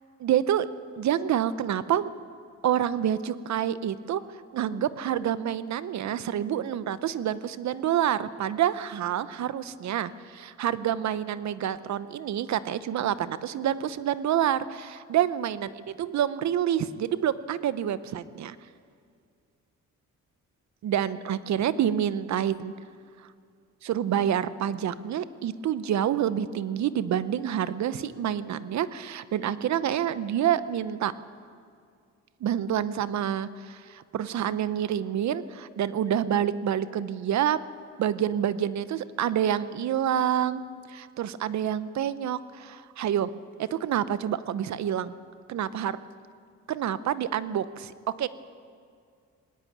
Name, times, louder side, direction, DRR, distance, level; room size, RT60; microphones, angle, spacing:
voice 1, 0.2-0.7 1.0-2.1 2.6-4.2 4.5-18.6 20.8-22.7 23.8-31.1 32.4-37.6 38.0-40.6 40.9-43.3 43.6-45.1 45.5-46.0 46.7-48.3, right 10 dB, 65° right, 15 dB, 0.9 m, -27 dB
19.0 x 18.5 x 8.8 m, 2.2 s
cardioid pair, 90°, 30 cm